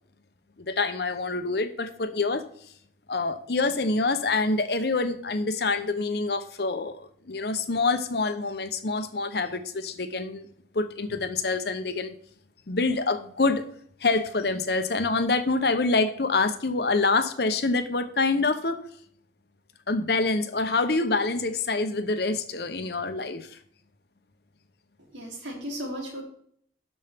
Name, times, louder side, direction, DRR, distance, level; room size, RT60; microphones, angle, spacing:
voice 1, 0.6-2.4 3.1-10.5 10.7-12.1 12.7-13.6 14.0-18.8 19.9-23.5, left 3 dB, 60° left, 9 dB, 0.9 m, -26 dB
voice 2, 25.0-26.2, equal, 75° right, -2 dB, 3.3 m, -35 dB
12.5 x 5.4 x 3.6 m, 0.64 s
head